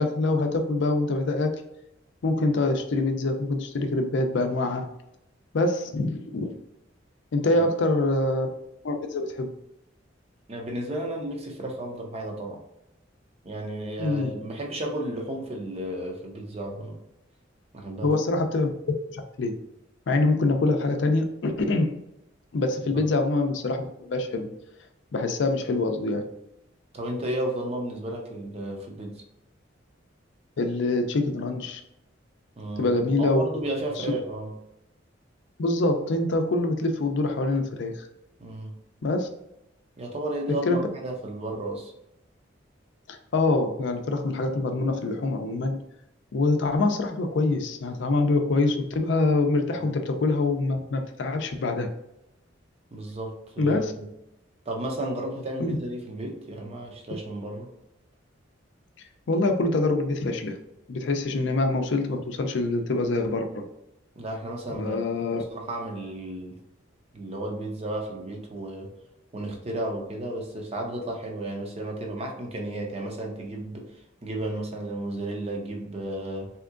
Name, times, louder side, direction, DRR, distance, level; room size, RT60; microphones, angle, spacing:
voice 1, 0.0-1.6 2.2-4.9 5.5-6.5 7.3-8.5 8.8-9.5 14.0-14.3 18.0-18.7 19.1-19.6 20.1-22.0 22.5-24.5 25.1-26.3 30.6-31.8 32.8-33.4 34.0-34.1 35.6-38.1 39.0-39.3 40.7-40.9 43.1-45.8 46.3-51.9 53.6-53.9 55.6-55.8 59.3-60.6 60.9-63.7 64.8-65.4, left 2 dB, 65° left, 5 dB, 0.4 m, -25 dB
voice 2, 10.5-12.6 13.4-17.0 17.7-18.1 22.9-23.0 26.9-29.2 32.6-32.9 33.2-34.6 38.4-38.8 40.0-41.9 52.9-54.1 54.7-57.7 64.2-65.1 65.4-66.6 67.1-68.9 69.3-73.9 74.2-76.5, right 1 dB, 35° right, 1 dB, 0.6 m, -33 dB
3.5 x 2.8 x 2.4 m, 0.86 s
head